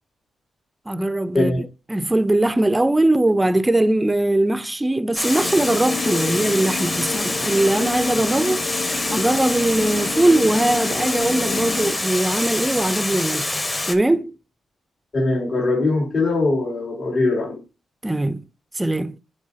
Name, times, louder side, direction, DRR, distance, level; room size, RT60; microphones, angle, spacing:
voice 1, 0.9-8.7 9.1-13.5 13.9-14.3 18.0-18.4 18.7-19.2, right 1 dB, 15° right, 0.5 m, -20 dB
Water, 5.2-14.0, left 2 dB, 20° left, 1.2 m, -26 dB
sound 1, 5.4-11.9, left 5 dB, 90° left, 0.9 m, -30 dB
voice 2, 15.1-17.6, left 2 dB, 50° left, 2.7 m, -21 dB
10.0 x 4.4 x 2.7 m
cardioid pair, 100°, 0 cm